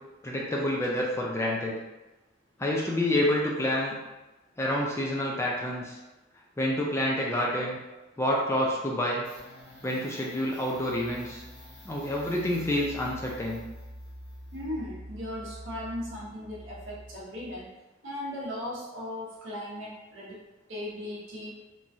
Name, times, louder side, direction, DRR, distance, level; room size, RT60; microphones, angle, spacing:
voice 1, 0.2-1.8 2.6-3.9 4.6-6.0 6.6-7.8 8.2-9.3 9.8-11.4 11.8-13.6, left 1 dB, 15° left, -3 dB, 0.3 m, -28 dB
sound 1, 9.2-17.7, equal, 50° left, 1.4 m, -46 dB
voice 2, 14.5-17.7 18.0-20.4 20.7-21.5, left 1 dB, 65° right, -4 dB, 0.8 m, -37 dB
3.0 x 2.3 x 2.6 m, 1.1 s
head